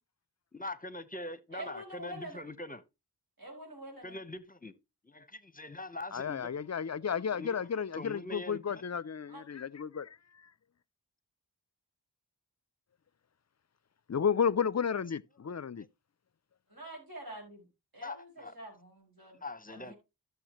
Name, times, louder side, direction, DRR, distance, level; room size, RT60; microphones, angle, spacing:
voice 1, 0.5-2.8 4.0-4.7 5.0-6.5 7.4-7.6 7.9-8.9 18.0-18.5 19.4-19.9, left 2 dB, 20° left, 0.8 m, -43 dB
voice 2, 1.5-2.5 3.4-4.2 9.3-9.4 16.7-17.7 17.9-19.9, right 1 dB, 60° right, 5.5 m, -46 dB
voice 3, 6.1-10.1 14.1-15.8, left 7 dB, 45° left, 0.4 m, -32 dB
13.0 x 6.9 x 3.0 m
wide cardioid pair, 45°, 40 cm